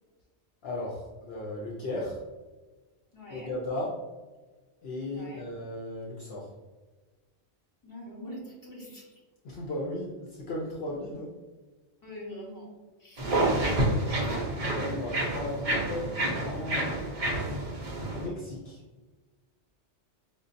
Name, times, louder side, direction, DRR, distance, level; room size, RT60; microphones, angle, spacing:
voice 1, 0.6-2.2 3.3-4.0 4.8-6.5 9.4-11.3 14.8-17.0 17.3-17.6 18.1-18.8, left 1 dB, 65° left, -2 dB, 0.8 m, -36 dB
voice 2, 3.1-3.5 5.1-5.5 7.8-9.1 12.0-14.5, equal, 20° left, -5 dB, 1.0 m, -44 dB
sound 1, 13.2-18.3, right 1 dB, 45° right, 0.5 m, -29 dB
5.2 x 2.2 x 2.5 m, 1.3 s
omnidirectional pair, 1.2 m